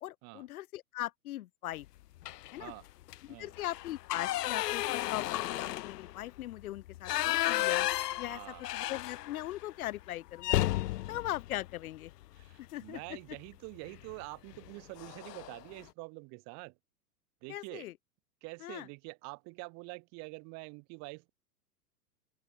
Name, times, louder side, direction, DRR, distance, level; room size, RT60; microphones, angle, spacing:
voice 1, 0.0-1.9 2.5-2.7 3.4-10.7 11.1-12.1 12.6-13.0 17.5-17.9 18.6-18.9, left 14 dB, 65° left, 1.0 m, -40 dB
sound 1, 2.2-2.6 3.0-3.2 3.5-9.6 9.9-10.0 10.4-12.5 13.9-14.1 14.5-14.7 15.0-15.6, left 15 dB, 85° left, 0.5 m, -33 dB
voice 2, 8.3-8.6 12.4-16.8 17.4-17.9 18.4-21.3, right 31 dB, 35° right, 1.5 m, -46 dB
open air
hypercardioid pair, 135°, 47 cm